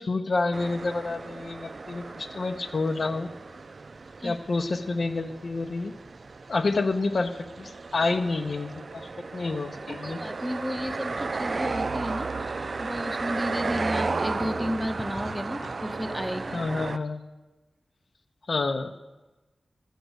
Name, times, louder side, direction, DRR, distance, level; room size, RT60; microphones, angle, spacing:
voice 1, 0.0-3.3 4.2-5.9 6.5-7.3 7.6-10.2 15.6-15.7 16.5-17.2 18.5-18.9, left 3 dB, 65° left, 6 dB, 0.8 m, -28 dB
sound 1, 0.5-17.0, right 3 dB, 55° right, 0.4 m, -34 dB
voice 2, 10.0-16.6, equal, ahead, 5 dB, 0.9 m, -32 dB
13.0 x 6.5 x 8.1 m, 1.1 s
wide cardioid pair, 85°, 0 cm